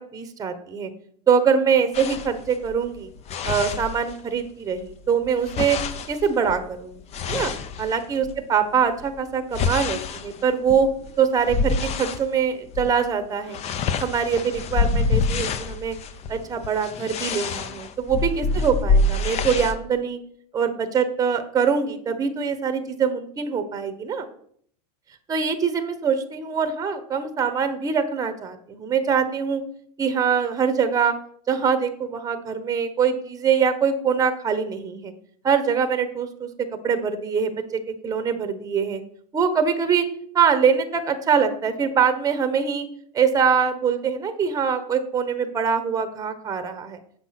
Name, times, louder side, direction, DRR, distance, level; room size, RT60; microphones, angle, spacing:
voice 1, 0.1-0.9 1.3-3.1 3.4-5.8 6.1-7.0 7.3-7.5 7.8-10.9 11.2-13.6 14.0-16.0 16.3-20.2 20.5-24.3 25.3-29.6 30.0-31.1 31.5-35.1 35.4-36.5 36.8-39.0 39.3-40.0 40.3-42.9 43.1-47.0, right 6 dB, 15° right, 9 dB, 1.0 m, -23 dB
sound 1, 1.9-4.5 4.8-8.4 8.9-12.3 12.7-13.0 13.2-19.8, left 4 dB, 30° left, 0.7 m, -27 dB
8.3 x 6.0 x 5.8 m, 0.62 s
supercardioid pair, 125°, 21 cm